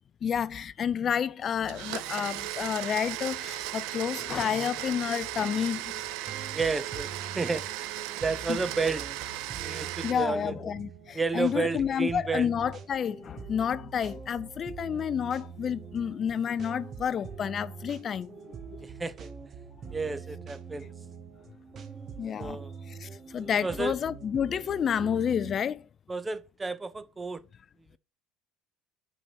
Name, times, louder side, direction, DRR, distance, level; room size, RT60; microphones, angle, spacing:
voice 1, 0.2-6.0 8.5-8.6 10.0-18.5 22.2-25.8, left 8 dB, 40° left, 0.4 m, -30 dB
Domestic sounds home sounds, 1.7-10.1, right 15 dB, 65° right, 0.5 m, -36 dB
sound 1, 5.9-25.5, right 6 dB, 45° right, 1.1 m, -44 dB
voice 2, 6.5-7.6 8.2-9.0 9.6-10.5 11.1-12.5 18.8-19.3 19.9-20.9 22.4-22.7 23.6-23.9 26.1-27.4, right 4 dB, 20° right, 0.7 m, -31 dB
6.0 x 5.9 x 4.3 m
hypercardioid pair, 70°, 0 cm